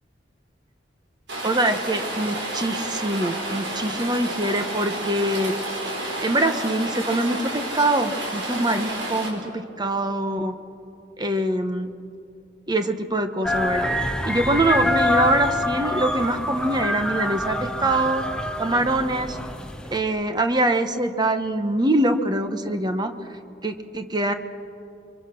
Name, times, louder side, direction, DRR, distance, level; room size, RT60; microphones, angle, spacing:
Rain, 1.3-9.3, right 1 dB, 90° right, 5.3 m, -30 dB
voice 1, 1.4-5.5 6.2-10.5 11.2-11.9 12.7-13.9 14.2-18.3 18.6-19.4 19.9-23.1 23.6-24.3, right 1 dB, 25° right, 7 dB, 1.1 m, -24 dB
sound 1, 13.4-20.0, left 1 dB, 5° left, 1.0 m, -26 dB
29.5 x 24.0 x 6.2 m, 2.6 s
head